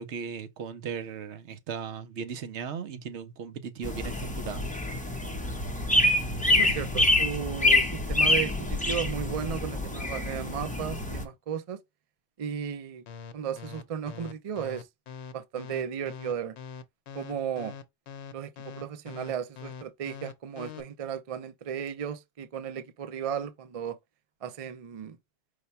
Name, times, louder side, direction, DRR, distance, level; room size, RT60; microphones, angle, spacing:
voice 1, 0.0-4.7, right 6 dB, 70° right, 1.0 m, -37 dB
sound 1, 3.8-11.2, left 2 dB, 10° left, 0.6 m, -26 dB
voice 2, 6.5-11.8 12.4-13.0 13.3-14.8 15.3-16.6 17.1-17.7 18.3-24.0 24.4-25.2, right 8 dB, 50° right, 0.4 m, -35 dB
sound 2, 13.1-20.8, left 6 dB, 65° left, 0.9 m, -42 dB
4.9 x 2.2 x 4.1 m
omnidirectional pair, 1.3 m